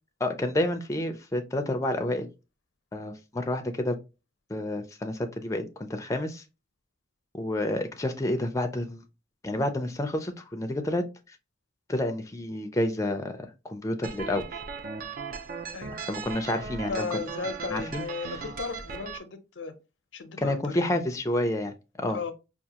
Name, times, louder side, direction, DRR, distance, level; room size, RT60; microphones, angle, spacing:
voice 1, 0.2-2.3 2.9-4.0 4.5-6.4 7.3-9.0 9.4-11.4 11.9-13.4 13.6-14.6 16.0-17.2 17.7-18.0 20.4-22.2, left 1 dB, 15° left, 0.4 m, -29 dB
sound 1, 14.0-19.2, right 5 dB, 50° right, 0.5 m, -38 dB
voice 2, 16.9-19.7 20.1-20.9 22.1-22.3, left 5 dB, 90° left, 0.6 m, -35 dB
4.7 x 2.4 x 2.8 m
head